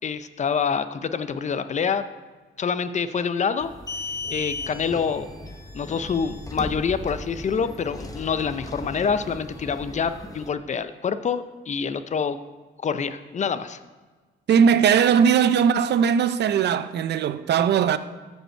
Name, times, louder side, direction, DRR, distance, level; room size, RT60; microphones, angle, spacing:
voice 1, 0.0-2.1 2.6-3.7 4.3-5.3 5.7-12.4 12.8-13.8, left 6 dB, 35° left, 0.6 m, -26 dB
sound 1, 3.6-10.5, left 2 dB, 15° left, 1.0 m, -36 dB
voice 2, 14.5-18.0, right 7 dB, 60° right, 0.6 m, -19 dB
14.0 x 5.4 x 4.5 m
cardioid pair, 90°, 20 cm